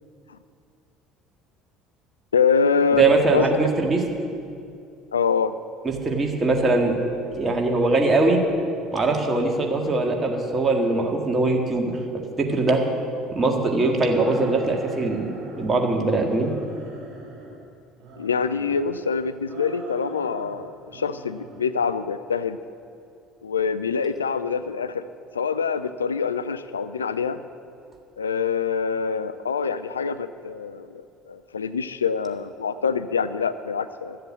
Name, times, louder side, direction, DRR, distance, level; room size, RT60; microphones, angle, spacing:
voice 1, 2.3-3.0 3.3-3.6 5.1-5.5 18.2-22.6 23.4-25.0 25.3-27.4 28.2-31.0 31.3-34.2, left 6 dB, 80° left, 13 dB, 0.3 m, -25 dB
voice 2, 3.0-4.0 5.8-7.0 7.4-8.4 8.9-12.0 12.4-12.8 13.3-16.5, right 3 dB, 25° right, 2 dB, 1.8 m, -21 dB
sound 1, 14.0-15.8 16.1-17.6 18.0-19.0 19.4-20.6 20.9-21.6, right 3 dB, 45° right, 3.7 m, -41 dB
13.0 x 7.8 x 7.3 m, 2.5 s
figure-of-eight pair, 60°, 0 cm